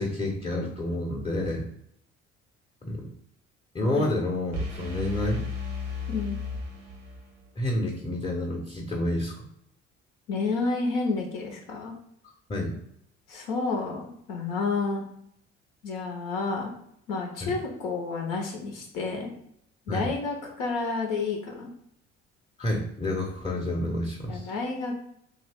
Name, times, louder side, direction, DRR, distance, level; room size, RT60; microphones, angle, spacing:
voice 1, 0.0-1.7 2.8-3.1 3.7-5.4 7.6-9.3 12.5-12.7 17.4-17.5 19.9-20.1 22.6-24.5, left 1 dB, 15° left, -2 dB, 0.7 m, -29 dB
sound 1, 4.5-7.4, left 4 dB, 80° right, 0.7 m, -34 dB
voice 2, 10.3-11.9 13.3-15.1 15.8-16.7 17.1-19.3 19.9-21.7 24.3-25.0, left 4 dB, 65° left, 1 dB, 0.7 m, -30 dB
2.8 x 2.4 x 3.4 m, 0.71 s
figure-of-eight pair, 50°, 37 cm